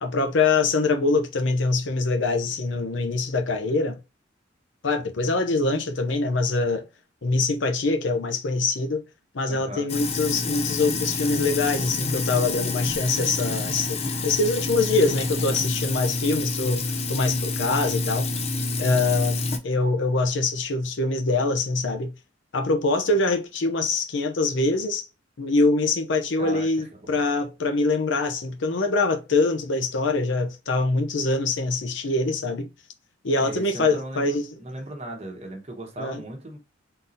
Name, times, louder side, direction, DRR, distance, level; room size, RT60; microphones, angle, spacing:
voice 1, 0.0-4.0 4.8-6.9 7.2-9.0 9.3-16.8 17.1-18.3 18.8-19.4 19.6-22.1 22.5-25.0 25.4-32.7 33.2-34.5 36.0-36.2, left 3 dB, 75° left, 0.6 m, -24 dB
voice 2, 9.5-9.9 26.4-26.7 27.0-27.2 33.4-36.6, right 1 dB, 35° right, 1.1 m, -37 dB
Sink (filling or washing), 9.9-19.6, left 3 dB, 35° left, 0.5 m, -28 dB
3.9 x 2.7 x 3.9 m
head